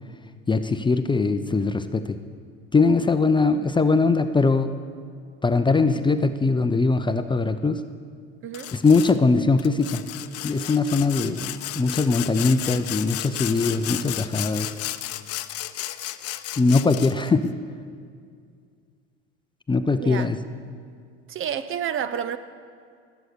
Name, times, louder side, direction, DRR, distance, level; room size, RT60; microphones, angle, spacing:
voice 1, 0.5-2.2 2.7-4.7 5.4-7.8 8.7-10.0 10.4-14.7 16.6-17.5 19.7-20.4, left 3 dB, 15° left, 9 dB, 0.6 m, -21 dB
Sawing, 8.5-9.2 9.6-17.3, left 14 dB, 50° left, 0.7 m, -33 dB
voice 2, 21.3-22.4, right 9 dB, 40° right, 13 dB, 0.8 m, -29 dB
19.0 x 8.1 x 6.8 m, 2.2 s
hypercardioid pair, 80°, 32 cm